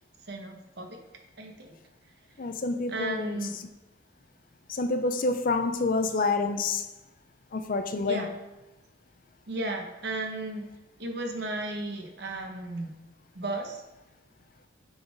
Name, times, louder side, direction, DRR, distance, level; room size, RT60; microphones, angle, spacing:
voice 1, 0.3-1.0 1.4-1.8 2.9-3.6 8.1-8.3 9.5-10.7 11.0-12.9 13.3-13.8, right 2 dB, 55° right, 3 dB, 0.9 m, -34 dB
voice 2, 2.4-3.4 4.7-6.9 7.5-8.3, left 3 dB, 45° left, 8 dB, 0.5 m, -28 dB
7.0 x 4.1 x 5.0 m, 1.0 s
head